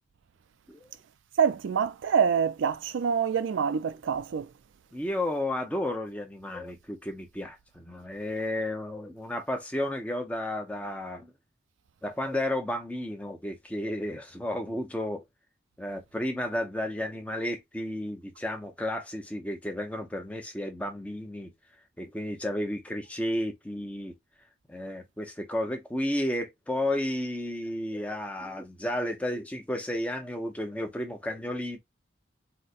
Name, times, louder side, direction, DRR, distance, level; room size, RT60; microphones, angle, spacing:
voice 1, 1.4-4.5, right 7 dB, 80° right, 0.4 m, -26 dB
voice 2, 4.9-11.3 12.0-15.2 15.8-21.5 22.0-24.1 24.7-31.8, left 1 dB, 5° left, 0.6 m, -32 dB
3.9 x 2.1 x 2.4 m
head